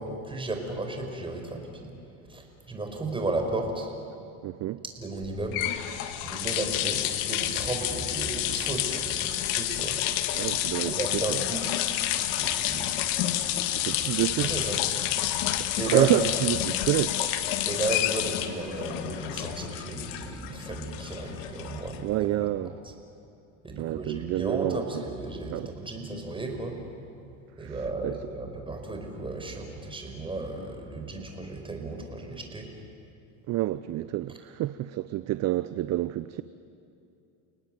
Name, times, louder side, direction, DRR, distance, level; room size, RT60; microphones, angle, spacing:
voice 1, 0.0-1.9 2.3-3.9 4.8-5.6 6.2-10.0 10.8-11.7 12.3-13.1 14.0-14.1 14.4-14.8 15.8-16.1 17.2-17.3 17.7-22.0 22.3-22.4 22.6-22.7 23.6-26.8 27.6-32.7, right 2 dB, 15° right, 5.2 m, -34 dB
voice 2, 4.4-4.8 10.3-11.4 13.7-14.5 15.8-17.2 22.0-22.7 23.8-25.0 25.5-25.7 27.6-28.2 33.5-36.4, right 15 dB, 45° right, 0.7 m, -28 dB
sound 1, 5.2-22.2, left 12 dB, 70° left, 1.8 m, -29 dB
29.5 x 19.0 x 9.3 m
supercardioid pair, 110°, 38 cm